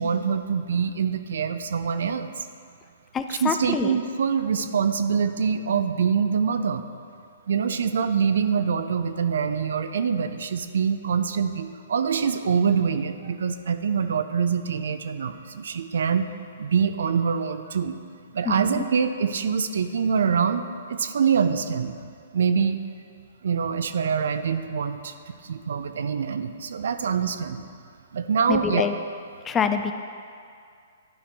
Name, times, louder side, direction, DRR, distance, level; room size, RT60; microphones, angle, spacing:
voice 1, 0.0-2.3 3.3-6.9 7.5-16.3 16.6-18.0 18.3-20.6 20.9-22.1 22.3-22.8 23.4-27.6 28.1-28.9, right 6 dB, 70° right, 9 dB, 0.5 m, -25 dB
voice 2, 3.1-4.0 18.4-18.8 28.5-28.9 29.4-29.9, left 6 dB, 20° left, 8 dB, 0.4 m, -26 dB
11.5 x 4.3 x 4.8 m, 2.3 s
hypercardioid pair, 125°, 0 cm